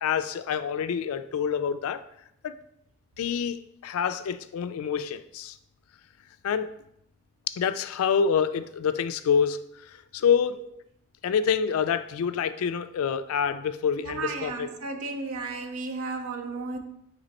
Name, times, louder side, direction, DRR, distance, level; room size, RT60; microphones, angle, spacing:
voice 1, 0.0-2.0 2.4-2.6 3.2-5.6 6.4-6.7 7.5-10.6 11.2-14.7, left 7 dB, 85° left, 0.3 m, -27 dB
voice 2, 14.0-16.8, right 3 dB, 80° right, 0.5 m, -34 dB
4.2 x 3.0 x 4.0 m
head